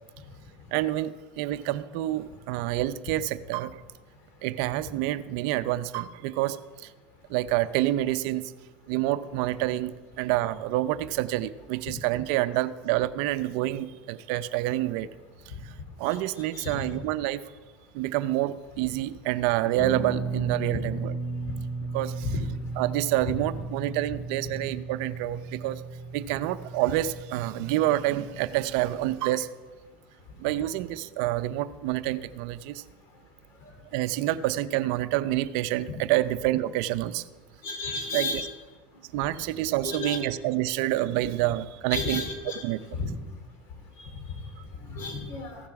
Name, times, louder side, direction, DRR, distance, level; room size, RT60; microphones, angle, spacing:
voice 1, 0.7-3.8 4.4-6.9 7.3-8.5 8.9-15.1 15.5-15.7 16.0-17.4 17.9-21.1 21.9-22.3 22.8-25.8 26.1-29.5 30.4-32.8 33.9-37.3 38.1-38.4 39.1-42.2 42.6-42.8, right 15 dB, 70° right, 13 dB, 0.5 m, -28 dB
Guitar, 19.8-29.0, right 3 dB, 35° left, 1.8 m, -35 dB
voice 2, 37.6-38.5 39.8-40.2 41.9-42.6 42.9-43.1 44.0-44.1 44.9-45.6, left 3 dB, 55° left, 5 dB, 2.8 m, -32 dB
15.0 x 7.3 x 5.9 m, 1.3 s
supercardioid pair, 110°, 5 cm